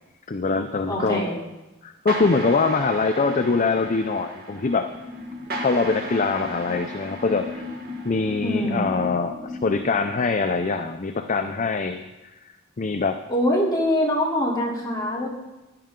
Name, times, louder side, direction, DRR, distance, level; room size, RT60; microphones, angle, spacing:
voice 1, 0.3-1.3 1.8-4.9 5.5-7.6 8.0-12.1 12.8-13.2, left 4 dB, 35° left, 8 dB, 0.5 m, -23 dB
voice 2, 0.9-1.3 8.4-8.9 13.3-15.3, left 1 dB, 20° left, -4 dB, 3.3 m, -23 dB
sound 1, 2.1-8.9, right 1 dB, 45° right, 1.9 m, -37 dB
sound 2, 4.9-10.0, left 3 dB, 20° right, 1.5 m, -37 dB
16.0 x 10.5 x 3.8 m, 1.0 s
head